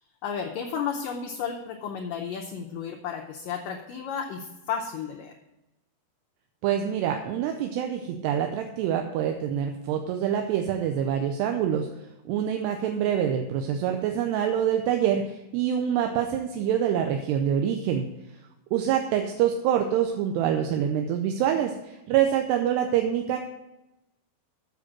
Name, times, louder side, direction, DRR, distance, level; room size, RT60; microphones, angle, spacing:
voice 1, 0.2-5.4, left 7 dB, 75° left, 1 dB, 2.0 m, -33 dB
voice 2, 6.6-11.9 12.3-18.1 18.7-23.4, right 9 dB, 85° right, 4 dB, 2.8 m, -26 dB
7.7 x 6.5 x 7.4 m, 0.93 s
omnidirectional pair, 4.7 m